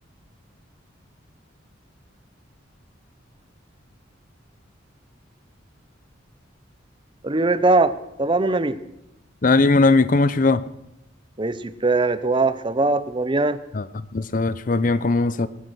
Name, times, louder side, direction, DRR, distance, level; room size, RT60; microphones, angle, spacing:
voice 1, 7.2-7.9 8.2-8.8 11.4-13.6, right 3 dB, 25° right, 14 dB, 0.7 m, -20 dB
voice 2, 9.4-10.6 13.7-15.5, left 3 dB, 45° left, 16 dB, 0.6 m, -19 dB
19.0 x 9.8 x 6.3 m, 0.85 s
head